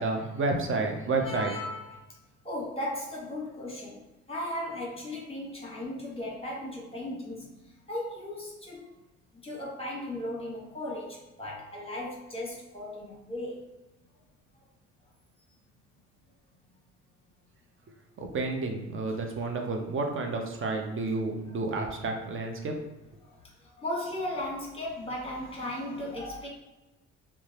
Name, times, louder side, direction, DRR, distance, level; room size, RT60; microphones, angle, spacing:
voice 1, 0.0-1.5 18.2-22.8, right 3 dB, 45° right, 3 dB, 0.6 m, -30 dB
voice 2, 1.2-1.9 2.4-8.9 9.3-13.8 14.5-14.6 23.2-26.5, left 1 dB, 20° left, -3 dB, 1.1 m, -36 dB
2.6 x 2.2 x 3.3 m, 1.0 s
cardioid pair, 90°, 30 cm